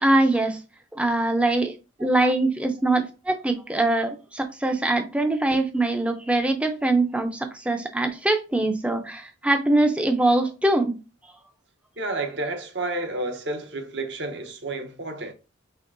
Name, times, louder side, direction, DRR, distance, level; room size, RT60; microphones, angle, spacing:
voice 1, 0.0-0.6 0.9-11.0, right 2 dB, 5° right, 0.4 m, -23 dB
voice 2, 12.0-15.3, right 2 dB, 60° right, 0.8 m, -30 dB
5.2 x 3.3 x 2.5 m
head